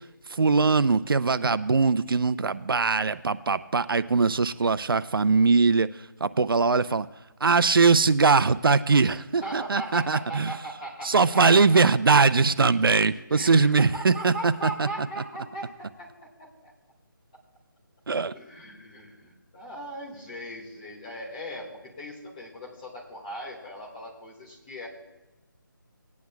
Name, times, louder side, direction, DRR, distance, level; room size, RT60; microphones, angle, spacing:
voice 1, 0.3-5.9 6.2-7.1 7.4-10.5 11.0-14.9 18.1-18.3, right 4 dB, 85° right, 15 dB, 0.5 m, -21 dB
voice 2, 9.4-11.9 13.3-16.7 18.3-24.9, right 1 dB, 20° left, -4 dB, 1.9 m, -39 dB
19.5 x 9.5 x 2.3 m, 1.0 s
figure-of-eight pair, 170°, 11 cm